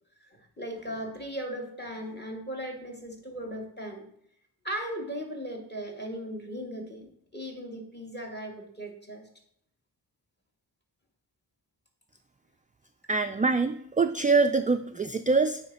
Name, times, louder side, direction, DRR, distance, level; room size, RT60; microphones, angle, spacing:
voice 1, 0.4-4.1 4.6-9.3, equal, 25° left, 1 dB, 2.2 m, -37 dB
voice 2, 13.1-15.6, right 4 dB, 20° right, 9 dB, 0.3 m, -24 dB
8.5 x 4.9 x 4.2 m, 0.70 s
cardioid pair, 60°, 43 cm